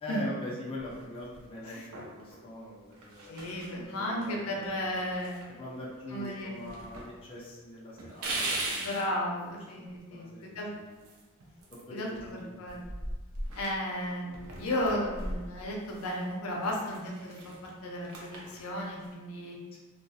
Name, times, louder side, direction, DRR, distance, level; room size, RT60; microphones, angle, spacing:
voice 1, 0.0-5.1 5.5-9.0 9.8-11.0 11.9-12.5 19.7-19.8, left 1 dB, 25° left, -6 dB, 0.4 m, -43 dB
sound 1, 0.8-1.5 1.9-2.4 2.9-3.8 4.2-4.3 4.6-5.9 6.2-7.1 7.4-7.5 8.0-9.1 10.9-12.3 12.6-16.2 16.5-19.1, right 2 dB, 90° right, 0.5 m, -40 dB
voice 2, 3.3-5.3 6.1-6.5 8.7-10.7 11.9-12.8 13.5-17.4 17.8-19.6, left 1 dB, 85° left, -2 dB, 0.5 m, -34 dB
2.3 x 2.2 x 2.6 m, 1.3 s
head